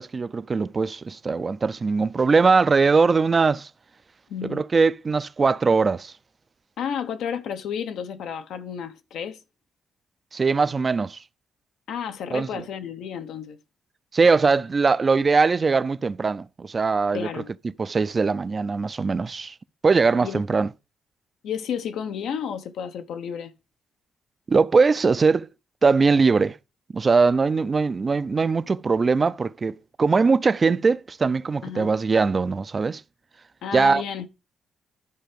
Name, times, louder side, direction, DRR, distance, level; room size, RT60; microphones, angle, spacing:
voice 1, 0.0-3.7 4.5-6.1 10.3-11.2 12.3-12.5 14.1-17.4 17.8-19.5 19.8-20.7 24.5-25.5 25.8-26.6 26.9-33.0 33.7-34.0, right 4 dB, 30° right, 0.4 m, -21 dB
voice 2, 4.3-4.6 6.8-9.4 11.9-13.6 17.1-17.5 20.2-20.4 21.4-23.5 31.6-31.9 33.6-34.3, left 8 dB, 90° left, 1.0 m, -31 dB
11.5 x 4.6 x 5.2 m
cardioid pair, 140°, 0 cm